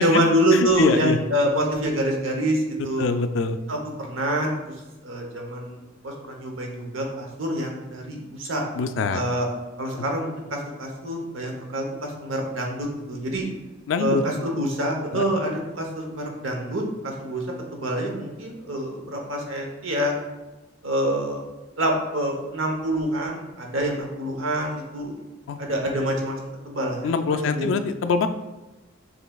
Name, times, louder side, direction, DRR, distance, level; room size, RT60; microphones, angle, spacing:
voice 1, 0.0-3.1 3.7-4.7 5.0-5.8 6.0-8.6 9.1-9.5 9.8-13.5 14.0-17.4 17.7-20.2 20.8-21.4 21.8-25.2 25.6-27.7, right 1 dB, 90° right, 1 dB, 0.9 m, -26 dB
voice 2, 0.5-1.2 3.0-3.6 8.7-9.2 13.9-14.2 15.1-15.3 25.5-25.6 27.0-28.3, left 4 dB, 75° left, 9 dB, 0.3 m, -24 dB
5.9 x 3.2 x 2.3 m, 1.1 s
head